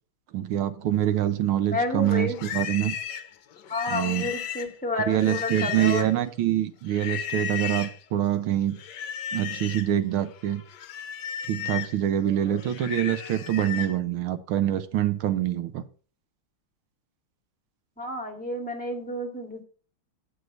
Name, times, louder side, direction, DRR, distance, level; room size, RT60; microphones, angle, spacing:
voice 1, 0.3-3.0 3.9-4.3 5.1-8.8 9.3-10.6 11.5-15.8, right 12 dB, 75° right, 11 dB, 1.6 m, -25 dB
voice 2, 1.7-2.4 3.7-6.1 18.0-19.6, left 2 dB, 5° left, 1 dB, 2.1 m, -30 dB
Livestock farm animals working animals, 2.0-6.3 6.9-8.0 8.8-9.9 10.3-14.0, left 9 dB, 60° left, 1.3 m, -35 dB
9.4 x 6.5 x 5.2 m, 0.41 s
omnidirectional pair, 2.3 m